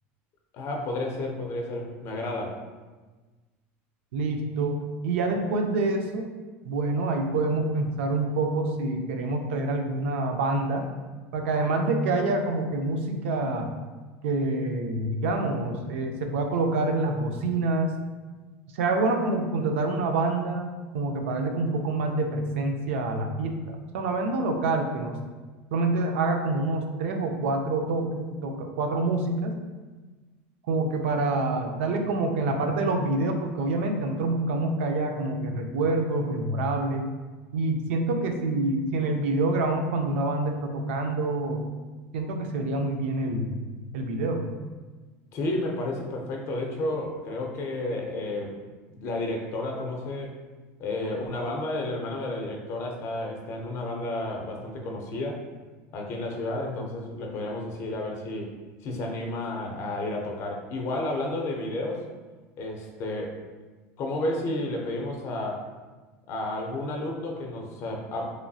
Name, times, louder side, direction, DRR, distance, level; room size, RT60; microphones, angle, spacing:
voice 1, 0.5-2.6 45.3-48.6 48.9-50.4 50.8-55.4 55.9-58.5 58.8-62.1 62.6-63.4 64.0-65.7 66.3-68.3, left 2 dB, 45° left, 1 dB, 0.5 m, -31 dB
voice 2, 4.1-6.3 6.6-10.9 11.3-13.7 14.2-17.9 18.7-23.6 23.9-25.2 25.7-29.5 30.7-37.0 37.5-41.6 42.1-43.5 43.9-44.4, right 2 dB, 90° right, 4 dB, 0.4 m, -27 dB
3.0 x 2.6 x 2.3 m, 1.3 s
supercardioid pair, 130°, 6 cm